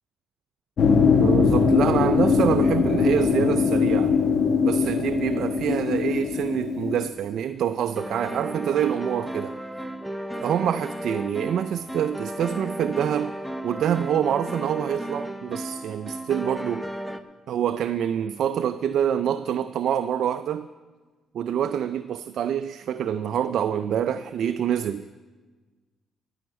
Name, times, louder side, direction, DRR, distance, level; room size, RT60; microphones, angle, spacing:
sound 1, 0.8-7.1, left 5 dB, 60° left, 1.4 m, -21 dB
voice 1, 1.2-4.1 4.6-9.6 10.4-13.3 13.6-16.8 17.5-20.7 21.3-25.0, right 9 dB, 70° right, 10 dB, 0.4 m, -26 dB
sound 2, 7.9-17.2, right 1 dB, ahead, 0.7 m, -34 dB
15.5 x 5.7 x 8.9 m, 1.3 s
cardioid pair, 90°, 0 cm